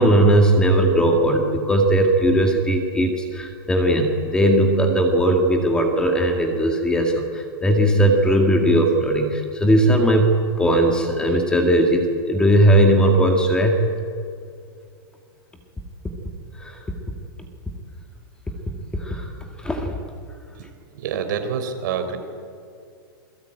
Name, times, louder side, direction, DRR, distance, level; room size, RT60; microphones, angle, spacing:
voice 1, 0.0-13.9 16.6-16.9 18.9-20.0, right 1 dB, 5° left, 3 dB, 2.0 m, -18 dB
voice 2, 20.9-22.2, right 7 dB, 55° right, 7 dB, 4.0 m, -27 dB
28.0 x 22.0 x 9.2 m, 2.3 s
supercardioid pair, 165°, 12 cm